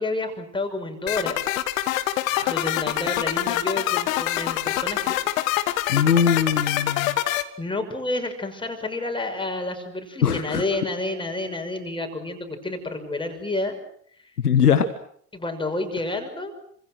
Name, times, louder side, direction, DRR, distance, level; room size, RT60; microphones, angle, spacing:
voice 1, 0.0-1.4 2.4-5.2 7.6-13.8 15.3-16.5, left 2 dB, 10° left, 5 dB, 6.1 m, -29 dB
sound 1, 1.1-7.4, left 14 dB, 60° left, 1.7 m, -25 dB
voice 2, 2.3-2.6 5.9-7.2 10.2-10.6 14.4-14.9, left 7 dB, 80° left, 10 dB, 1.5 m, -21 dB
28.5 x 26.5 x 6.4 m, 0.64 s
figure-of-eight pair, 70°, 45 cm